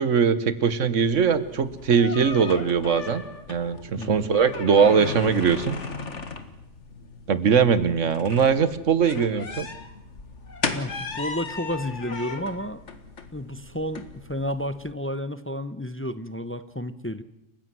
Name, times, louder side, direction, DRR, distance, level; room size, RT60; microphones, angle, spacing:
voice 1, 0.0-3.2 3.5-5.8 7.3-9.7, right 6 dB, 90° right, 14 dB, 1.6 m, -21 dB
sound 1, 1.1-14.9, left 4 dB, 75° left, 2.1 m, -37 dB
voice 2, 4.0-4.3 10.7-12.8 13.3-17.2, left 1 dB, 10° left, 12 dB, 0.7 m, -31 dB
29.0 x 15.5 x 7.7 m, 0.89 s
omnidirectional pair, 1.3 m